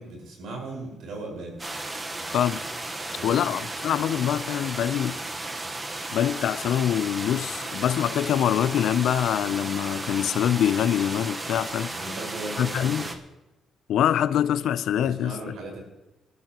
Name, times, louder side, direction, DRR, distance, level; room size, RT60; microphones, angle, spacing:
voice 1, 0.0-1.6 3.1-3.4 11.9-13.1 15.0-15.8, right 2 dB, 75° right, 4.9 m, -37 dB
sound 1, 1.6-13.2, right 2 dB, 25° right, 1.1 m, -34 dB
voice 2, 2.3-2.7 3.2-5.2 6.1-12.0 12.6-13.1 13.9-15.4, left 10 dB, 75° left, 0.5 m, -24 dB
20.0 x 12.5 x 3.0 m
cardioid pair, 90°, 0 cm